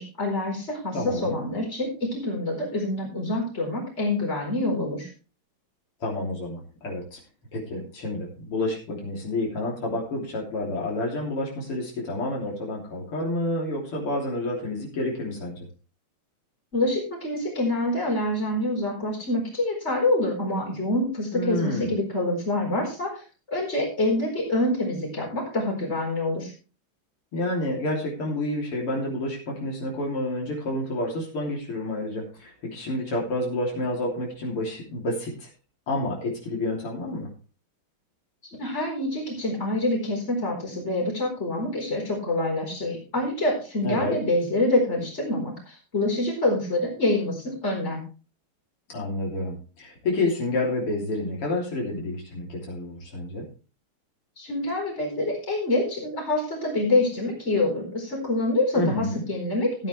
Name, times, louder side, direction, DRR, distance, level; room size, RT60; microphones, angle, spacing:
voice 1, 0.0-1.0 1.2-5.1 16.7-23.2 23.5-26.5 38.6-48.0 54.4-59.9, left 2 dB, 30° left, -1 dB, 4.6 m, -26 dB
voice 2, 0.9-1.4 6.0-7.2 7.5-15.7 21.3-22.0 27.3-35.5 35.9-37.3 43.8-44.2 48.9-53.4 58.7-59.2, left 1 dB, 80° left, -2 dB, 4.1 m, -29 dB
15.0 x 9.3 x 3.3 m, 0.35 s
omnidirectional pair, 2.4 m